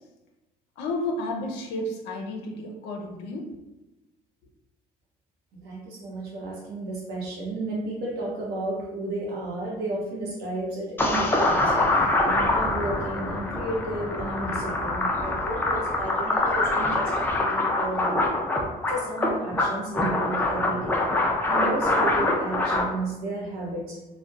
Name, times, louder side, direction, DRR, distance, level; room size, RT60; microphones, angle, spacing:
voice 1, 0.8-3.5, left 1 dB, 85° left, 1 dB, 0.5 m, -32 dB
voice 2, 5.6-11.8 12.2-18.3 18.9-21.0 21.5-24.0, right 2 dB, 75° right, -4 dB, 0.7 m, -33 dB
sound 1, 11.0-22.8, left 2 dB, 10° left, 0.4 m, -24 dB
2.6 x 2.0 x 2.3 m, 1.0 s
cardioid pair, 110°, 17 cm